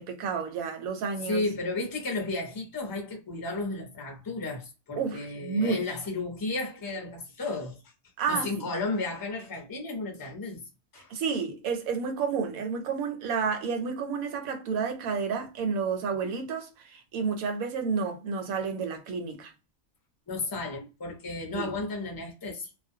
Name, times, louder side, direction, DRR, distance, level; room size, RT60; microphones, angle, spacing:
voice 1, 0.0-1.4 5.0-6.0 8.2-8.7 11.1-19.5 21.5-21.7, right 5 dB, 85° right, 1.1 m, -30 dB
voice 2, 1.2-7.8 8.3-10.6 10.9-11.1 20.3-22.7, left 3 dB, 25° left, 0.5 m, -33 dB
2.4 x 2.2 x 2.6 m
omnidirectional pair, 1.4 m